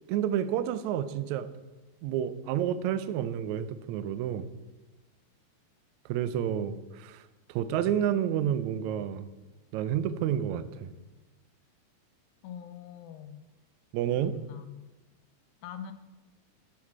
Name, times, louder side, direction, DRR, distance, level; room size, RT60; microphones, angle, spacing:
voice 1, 0.1-1.5 2.0-4.5 6.0-9.3 9.7-10.9 13.9-14.4, right 10 dB, 85° right, 12 dB, 1.6 m, -30 dB
voice 2, 12.4-13.4 14.1-14.9 15.6-15.9, left 9 dB, 85° left, 9 dB, 2.6 m, -43 dB
15.0 x 7.4 x 4.8 m, 1.1 s
omnidirectional pair, 4.0 m